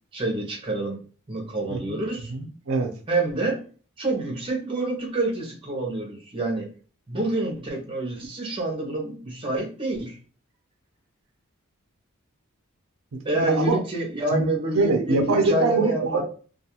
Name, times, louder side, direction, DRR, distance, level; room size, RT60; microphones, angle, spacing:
voice 1, 0.1-1.0 1.3-2.3 3.1-3.6 4.0-6.7 7.1-10.2 13.2-16.2, right 2 dB, 25° right, 0.7 m, -27 dB
voice 2, 2.3-2.9 13.3-13.8 14.3-14.5 14.7-16.2, right 3 dB, 70° right, 0.5 m, -23 dB
2.4 x 2.3 x 2.9 m
head